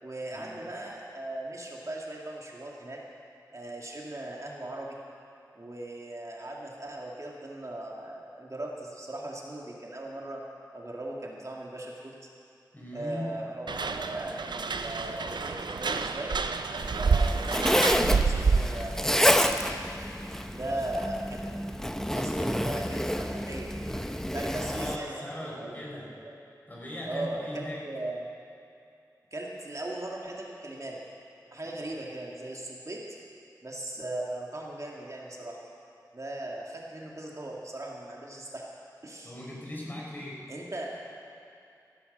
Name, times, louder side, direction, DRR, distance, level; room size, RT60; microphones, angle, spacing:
voice 1, 0.0-3.0 3.5-5.0 5.6-10.4 10.7-12.1 12.9-16.4 17.0-19.6 20.5-21.6 22.0-23.7 24.3-25.7 26.0-26.4 27.1-28.3 29.3-31.0 31.5-33.0 33.6-35.6 36.1-38.6 39.0-39.4 40.5-40.9, right 1 dB, 45° right, -2 dB, 2.0 m, -38 dB
voice 2, 12.7-13.4 16.7-17.0 20.6-20.8 24.6-26.1 26.7-27.8 31.9-32.0 39.2-40.4, left 1 dB, 25° left, -4 dB, 4.6 m, -39 dB
sound 1, 13.7-18.9, right 4 dB, 85° right, 0.5 m, -28 dB
Zipper (clothing), 16.8-25.0, equal, 5° left, 0.8 m, -29 dB
15.0 x 13.5 x 5.3 m, 2.6 s
cardioid pair, 40°, 7 cm